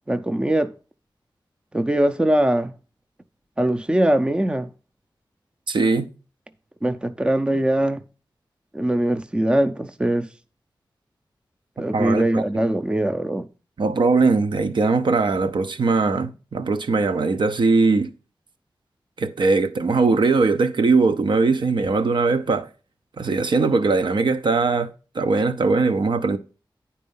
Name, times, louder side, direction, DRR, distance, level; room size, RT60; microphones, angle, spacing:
voice 1, 0.1-0.7 1.7-2.7 3.6-4.7 6.8-8.0 8.7-10.3 11.8-13.4, right 1 dB, 10° right, 0.4 m, -21 dB
voice 2, 5.7-6.1 11.9-12.4 13.8-18.1 19.2-22.7 23.2-26.4, right 3 dB, 70° right, 0.6 m, -20 dB
9.4 x 4.2 x 5.4 m
wide cardioid pair, 100°, 8 cm